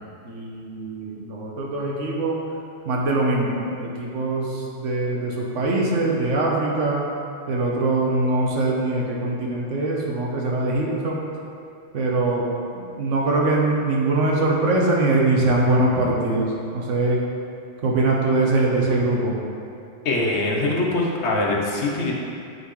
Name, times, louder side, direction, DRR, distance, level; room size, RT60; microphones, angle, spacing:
voice 1, 0.0-2.4 2.8-7.0 7.5-11.2 11.9-12.5 13.0-17.2 17.8-19.3, right 2 dB, 80° right, -2 dB, 1.3 m, -22 dB
voice 2, 20.0-22.1, left 2 dB, 65° left, -1 dB, 1.1 m, -23 dB
9.1 x 4.0 x 3.1 m, 2.5 s
omnidirectional pair, 1.3 m